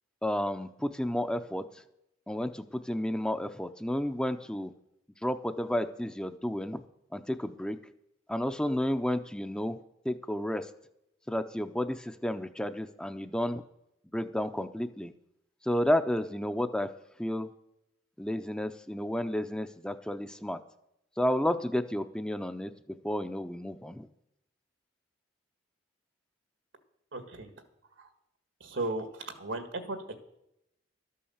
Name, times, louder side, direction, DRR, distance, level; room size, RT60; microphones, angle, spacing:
voice 1, 0.2-1.6 2.3-4.7 5.2-6.8 7.1-7.8 8.3-9.8 10.0-10.7 11.3-13.6 14.1-15.1 15.6-16.9 17.2-17.5 18.2-20.6 21.2-22.7 23.0-24.1, left 1 dB, 5° left, 9 dB, 0.5 m, -31 dB
voice 2, 27.1-27.5 28.6-30.0, right 2 dB, 80° right, 8 dB, 1.8 m, -35 dB
12.5 x 8.5 x 7.2 m, 0.82 s
head